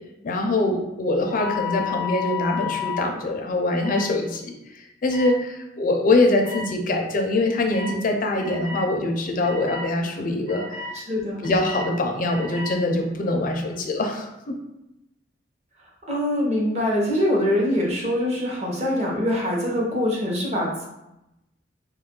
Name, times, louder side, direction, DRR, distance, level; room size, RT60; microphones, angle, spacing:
voice 1, 0.2-10.6 11.4-14.5, left 2 dB, 45° left, 3 dB, 0.4 m, -23 dB
sound 1, 1.2-3.0 3.8-4.0 5.1-5.3 6.4-6.6 7.7-7.9 8.4-8.8 9.4-9.8 10.5-10.9 11.4-11.9 12.3-12.7, left 7 dB, 90° right, 1.0 m, -31 dB
voice 2, 10.9-11.5 16.1-20.8, left 1 dB, 35° right, -3 dB, 0.8 m, -24 dB
2.8 x 2.4 x 3.6 m, 0.90 s
head